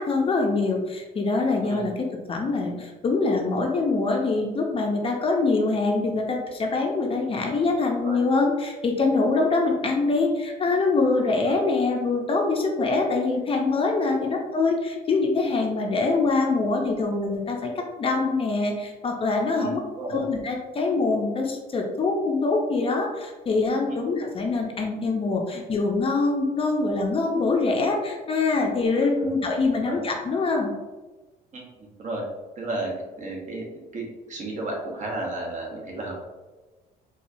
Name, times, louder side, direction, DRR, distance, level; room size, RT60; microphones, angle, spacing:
voice 1, 0.0-1.9 2.3-19.8 20.1-30.7, left 3 dB, 35° left, 1 dB, 0.6 m, -24 dB
voice 2, 19.5-20.2 23.9-24.0 29.2-29.3 29.7-30.0 31.5-32.2 32.6-32.9 33.2-33.7 33.9-36.2, right 2 dB, 45° right, -1 dB, 1.0 m, -33 dB
4.2 x 2.3 x 2.7 m, 1.2 s
cardioid pair, 110°, 17 cm